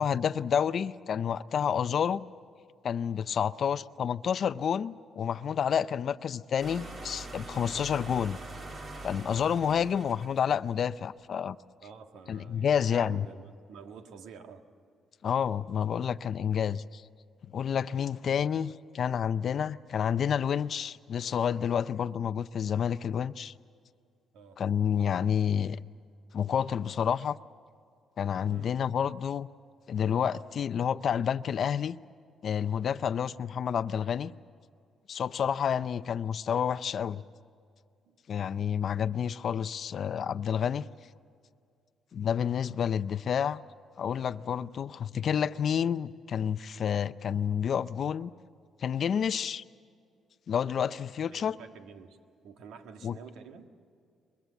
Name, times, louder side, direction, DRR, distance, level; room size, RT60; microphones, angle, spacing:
voice 1, 0.0-2.2 2.8-8.4 9.0-11.6 12.3-13.3 15.2-17.0 17.5-23.5 24.6-25.8 26.3-27.4 28.2-29.5 29.9-32.0 32.4-34.3 35.1-37.2 38.3-40.9 42.1-43.6 44.0-48.3 48.8-49.6 50.5-51.6 53.0-53.1, left 8 dB, 50° left, 0.5 m, -29 dB
sound 1, 6.6-10.8, right 2 dB, 40° right, 2.4 m, -43 dB
voice 2, 11.8-14.7 24.3-24.6 28.5-28.7 38.0-38.6 51.3-52.2 52.4-53.7, right 6 dB, 90° right, 1.6 m, -49 dB
22.5 x 22.0 x 8.1 m
cardioid pair, 120°, 0 cm